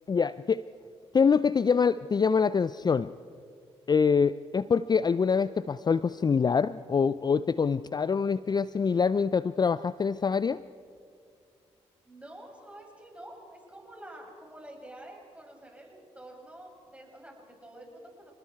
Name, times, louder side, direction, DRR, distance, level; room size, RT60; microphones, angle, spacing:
voice 1, 0.1-0.6 1.1-3.1 3.9-10.6, left 5 dB, 35° left, 16 dB, 0.4 m, -25 dB
voice 2, 12.0-18.3, right 1 dB, 10° right, 0 dB, 7.4 m, -48 dB
28.5 x 20.5 x 4.6 m, 2.2 s
supercardioid pair, 50°, 13 cm